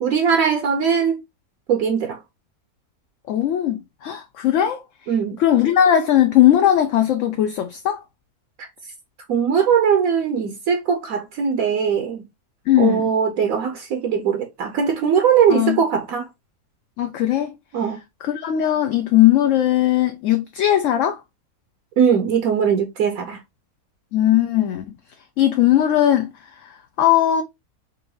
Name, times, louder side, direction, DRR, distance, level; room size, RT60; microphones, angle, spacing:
voice 1, 0.0-1.2 1.7-2.2 5.1-5.4 8.6-8.7 9.3-12.3 12.8-16.3 17.7-18.0 22.0-23.4, right 7 dB, 65° right, 1.1 m, -20 dB
voice 2, 3.3-4.8 5.4-8.0 12.7-13.1 15.5-15.8 17.0-17.5 18.2-21.2 24.1-24.8 25.4-26.3 27.0-27.4, left 11 dB, 65° left, 0.8 m, -18 dB
4.6 x 2.6 x 3.7 m
omnidirectional pair, 1.6 m